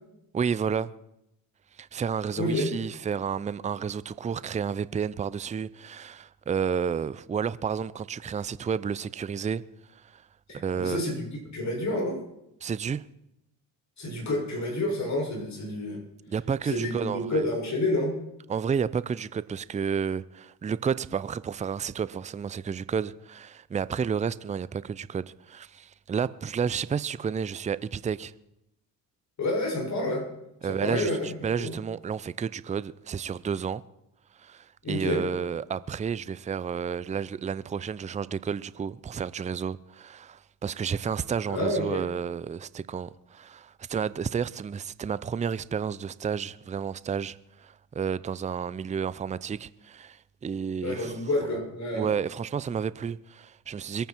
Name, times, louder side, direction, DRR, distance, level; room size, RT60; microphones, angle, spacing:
voice 1, 0.3-0.9 1.8-9.6 9.9-10.2 10.5-11.0 12.6-13.0 16.3-17.5 18.5-28.3 30.6-33.8 34.4-51.1 51.9-54.1, right 7 dB, 20° right, 0.5 m, -31 dB
voice 2, 2.3-2.7 10.5-11.3 11.5-12.2 14.0-16.0 16.6-18.2 29.4-30.3 30.6-31.7 34.8-35.2 41.5-42.0 50.8-52.1, left 1 dB, 45° left, 6.6 m, -29 dB
22.5 x 9.1 x 4.5 m
supercardioid pair, 70°, 39 cm